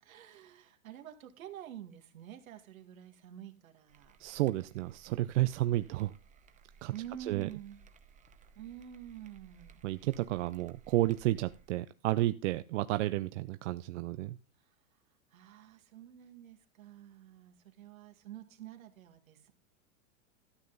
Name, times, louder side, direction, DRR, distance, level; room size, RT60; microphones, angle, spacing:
voice 1, 0.0-4.2 6.9-7.8 8.6-9.8 15.3-19.5, right 10 dB, 75° right, 6 dB, 2.1 m, -48 dB
sound 1, 3.9-11.7, right 6 dB, 20° right, 0.9 m, -60 dB
voice 2, 4.2-6.1 6.8-6.9 7.3-7.5 9.8-14.4, right 16 dB, 60° right, 12 dB, 0.6 m, -31 dB
13.0 x 7.8 x 4.0 m, 0.35 s
hypercardioid pair, 130°, 42 cm